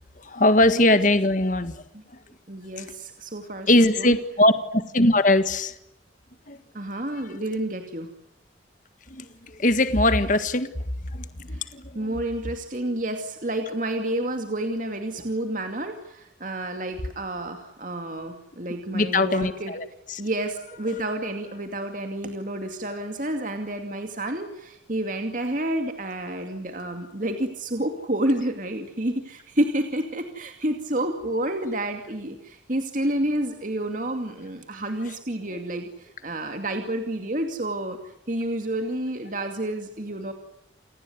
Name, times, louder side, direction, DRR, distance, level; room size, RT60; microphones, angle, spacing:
voice 1, 0.2-1.7 2.8-2.9 3.7-5.7 6.5-6.6 7.3-7.4 9.1-10.7 11.1-12.2 18.9-20.2, left 1 dB, 45° left, 11 dB, 1.7 m, -21 dB
voice 2, 2.5-4.2 6.7-8.1 11.5-11.6 11.9-19.7 20.2-38.0 38.3-40.3, right 1 dB, 45° right, 5 dB, 2.5 m, -29 dB
29.5 x 19.0 x 9.5 m, 0.85 s
head